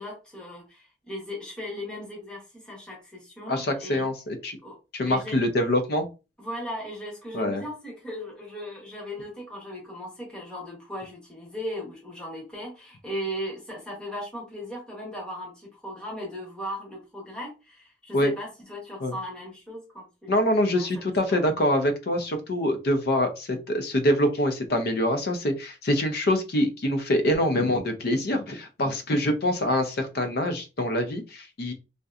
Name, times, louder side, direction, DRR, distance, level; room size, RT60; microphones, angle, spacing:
voice 1, 0.0-4.1 4.6-4.8 5.1-5.4 6.4-20.4 20.7-21.4, equal, 5° left, 0.9 m, -37 dB
voice 2, 3.5-4.6 4.9-6.1 7.3-7.6 18.1-18.3 19.0-19.1 20.3-31.7, left 1 dB, 60° left, 0.5 m, -25 dB
2.7 x 2.1 x 2.4 m
head